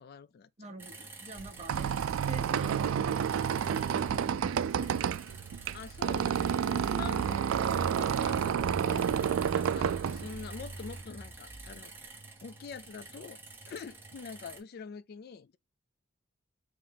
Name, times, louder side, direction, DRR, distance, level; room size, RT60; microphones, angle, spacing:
voice 1, 0.0-0.7 5.7-9.1 9.5-11.9 12.4-13.4 13.7-15.6, left 6 dB, 50° left, 0.3 m, -45 dB
voice 2, 0.6-3.6 3.9-5.1, right 2 dB, 35° right, 1.0 m, -47 dB
sound 1, 0.8-14.6, right 3 dB, 10° right, 1.2 m, -49 dB
Telephone, 1.3-5.3 6.5-12.2, right 1 dB, 10° left, 1.3 m, -46 dB
Squeak, 1.4-11.0, right 8 dB, 85° right, 0.3 m, -30 dB
4.3 x 3.1 x 3.8 m
head